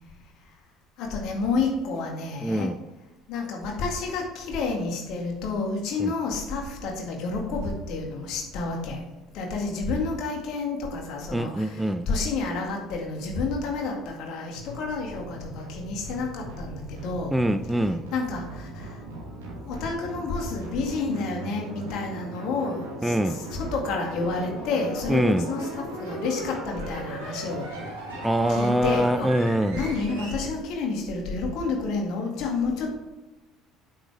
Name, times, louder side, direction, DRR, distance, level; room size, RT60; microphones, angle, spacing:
voice 1, 1.0-2.7 3.3-9.0 9.3-17.3 18.1-19.0 19.7-27.8 28.5-29.3 29.7-32.9, left 4 dB, 55° left, 1 dB, 2.1 m, -30 dB
voice 2, 2.4-2.8 6.0-6.1 11.3-12.1 17.3-18.0 23.0-23.4 25.1-25.5 28.2-29.8, right 1 dB, 5° right, 10 dB, 0.5 m, -24 dB
sound 1, 14.5-30.4, right 1 dB, 75° right, 2.6 m, -38 dB
8.8 x 7.1 x 3.4 m, 1.1 s
figure-of-eight pair, 60°, 0 cm